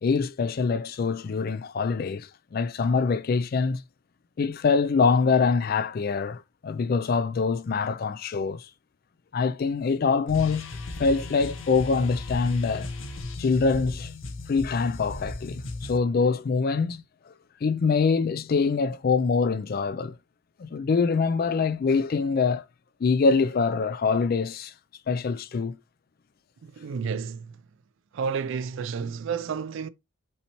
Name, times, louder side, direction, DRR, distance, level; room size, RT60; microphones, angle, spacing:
voice 1, 0.0-3.8 4.4-8.7 9.3-10.7 11.0-12.9 13.4-14.1 14.5-17.0 17.6-20.2 20.6-22.6 23.0-24.7 25.1-25.8, left 4 dB, 45° left, 0.3 m, -24 dB
sound 1, 10.3-16.0, left 2 dB, 65° left, 0.7 m, -36 dB
voice 2, 26.6-27.6 28.1-29.9, right 6 dB, 60° right, 0.3 m, -31 dB
5.4 x 3.2 x 2.9 m
head